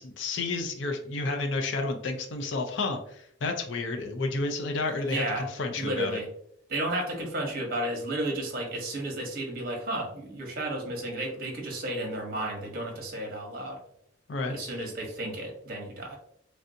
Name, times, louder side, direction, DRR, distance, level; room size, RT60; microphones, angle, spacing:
voice 1, 0.0-6.2 14.3-14.5, left 3 dB, 65° left, 4 dB, 0.5 m, -31 dB
voice 2, 5.0-5.5 5.8-6.3 6.7-13.8 14.5-16.2, right 1 dB, 50° right, 1 dB, 0.9 m, -32 dB
3.3 x 2.5 x 2.6 m, 0.71 s
head